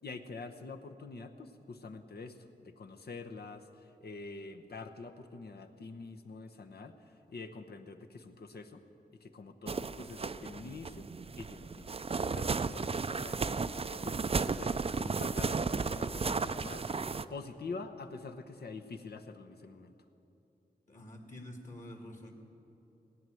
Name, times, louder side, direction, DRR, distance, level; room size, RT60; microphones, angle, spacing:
voice 1, 0.0-8.8 9.1-11.1 11.4-19.9, left 4 dB, 70° left, 6 dB, 1.0 m, -46 dB
sound 1, 9.7-17.2, right 4 dB, 35° right, 0.5 m, -34 dB
voice 2, 20.9-22.3, left 1 dB, 50° left, 2 dB, 2.2 m, -47 dB
18.0 x 9.3 x 7.8 m, 2.9 s
cardioid pair, 55°, 17 cm